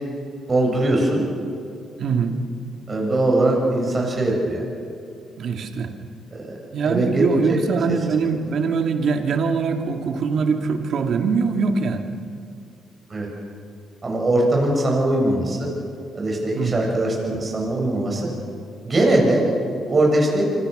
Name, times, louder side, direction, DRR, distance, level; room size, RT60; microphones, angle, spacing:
voice 1, 0.5-1.2 2.9-4.6 6.3-6.5 6.8-7.6 13.1-13.3 14.0-15.7 16.1-18.3 18.8-19.5 19.9-20.5, right 1 dB, 30° right, -1 dB, 7.9 m, -21 dB
voice 2, 2.0-2.4 5.4-5.9 6.7-12.0 16.5-16.8, right 5 dB, 65° right, 5 dB, 2.4 m, -22 dB
26.5 x 24.5 x 6.8 m, 2.5 s
cardioid pair, 90°, 0 cm